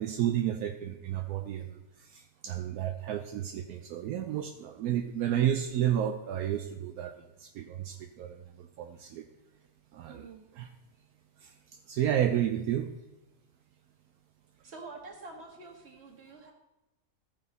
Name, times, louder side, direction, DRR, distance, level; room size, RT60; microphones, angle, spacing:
voice 1, 0.0-1.8 2.1-7.1 7.4-9.3 9.9-10.3 10.5-10.7 11.4-11.5 11.9-13.0, right 10 dB, 75° right, 5 dB, 1.0 m, -31 dB
voice 2, 10.1-10.4 14.6-16.5, right 3 dB, 45° right, 1 dB, 1.6 m, -47 dB
14.5 x 5.1 x 4.0 m, 0.98 s
omnidirectional pair, 1.6 m